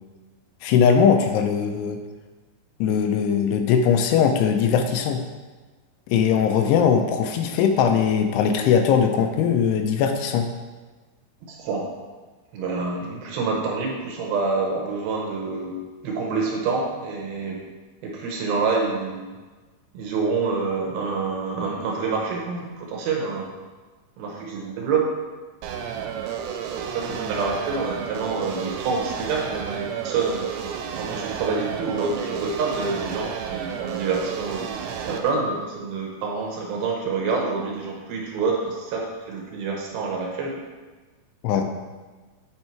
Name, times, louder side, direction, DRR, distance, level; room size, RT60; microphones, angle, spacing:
voice 1, 0.6-2.0 2.8-5.2 6.1-10.5 41.4-41.7, left 7 dB, 85° left, 5 dB, 2.6 m, -20 dB
voice 2, 11.4-11.9 12.5-15.8 16.0-17.6 18.0-19.3 19.9-23.5 24.2-25.0 26.8-30.5 31.0-34.7 35.0-40.5, right 4 dB, 75° right, -1 dB, 2.6 m, -27 dB
sound 1, 25.6-35.2, right 8 dB, 90° right, 2.8 m, -32 dB
8.6 x 4.4 x 4.5 m, 1.3 s
omnidirectional pair, 4.9 m